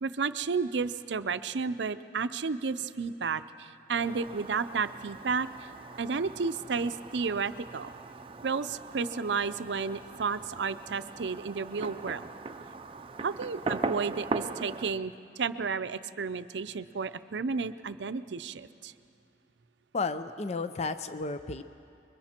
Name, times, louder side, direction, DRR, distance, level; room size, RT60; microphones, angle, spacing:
voice 1, 0.0-5.7 6.0-7.9 8.4-12.2 13.2-18.9, right 5 dB, 80° right, 12 dB, 0.6 m, -32 dB
Fireworks, 4.0-14.9, right 3 dB, 30° right, 0.6 m, -40 dB
voice 2, 19.9-21.6, left 3 dB, 40° left, 11 dB, 0.6 m, -33 dB
29.5 x 22.0 x 4.4 m, 2.6 s
head